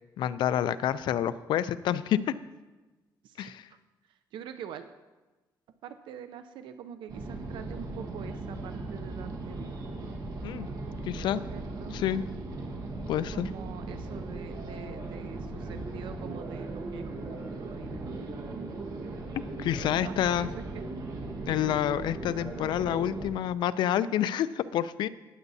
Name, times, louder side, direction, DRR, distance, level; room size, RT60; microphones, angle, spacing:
voice 1, 0.2-2.2 3.4-3.7 10.4-10.7 11.0-11.4 11.9-12.2 13.1-13.5 19.3-20.5 21.5-25.1, left 11 dB, 75° left, 14 dB, 0.4 m, -28 dB
voice 2, 4.3-4.9 5.8-9.7 11.5-12.0 13.3-18.7 20.0-20.5 20.7-20.8, right 9 dB, 85° right, 9 dB, 0.5 m, -45 dB
sound 1, 7.1-23.3, right 2 dB, 50° right, 1.4 m, -38 dB
18.0 x 8.1 x 2.7 m, 1.2 s
cardioid pair, 165°, 8 cm